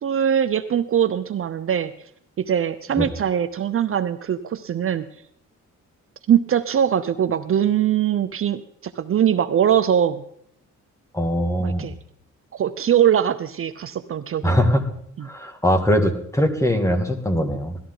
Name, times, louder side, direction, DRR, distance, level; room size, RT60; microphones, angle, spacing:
voice 1, 0.0-1.9 2.4-5.1 6.3-10.2 11.6-11.9 12.5-14.7 15.2-15.3, right 9 dB, 45° right, 11 dB, 0.7 m, -22 dB
voice 2, 11.1-11.9 14.4-14.8 15.2-17.8, equal, 10° left, 5 dB, 2.3 m, -21 dB
18.0 x 13.0 x 4.0 m, 0.69 s
cardioid pair, 90°, 30 cm